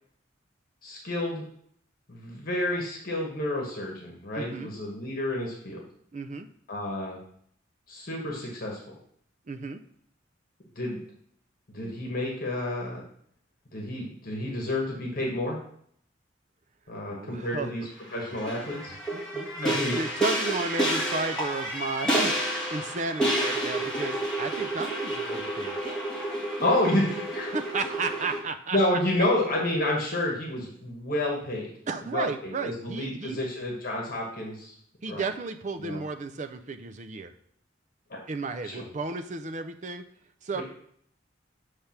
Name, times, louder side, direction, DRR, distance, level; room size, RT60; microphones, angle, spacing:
voice 1, 0.8-1.4 2.1-5.8 6.7-7.2 7.9-9.0 10.7-11.0 11.7-13.0 13.7-15.6 16.9-18.9 19.6-19.9 26.6-27.5 28.7-31.7 32.0-34.7 35.1-35.3 35.8-36.0 38.1-38.2 38.6-38.8 40.5-40.6, left 1 dB, 50° left, -1 dB, 1.3 m, -30 dB
voice 2, 4.3-4.7 6.1-6.5 9.5-9.8 17.1-17.7 19.1-22.3 22.7-25.8 27.5-28.8 31.9-33.4 35.0-37.3 38.3-40.0 40.4-40.6, right 3 dB, 40° right, 9 dB, 0.5 m, -33 dB
sound 1, 18.1-28.4, right 1 dB, 5° left, 1.7 m, -30 dB
6.9 x 3.3 x 5.8 m, 0.65 s
head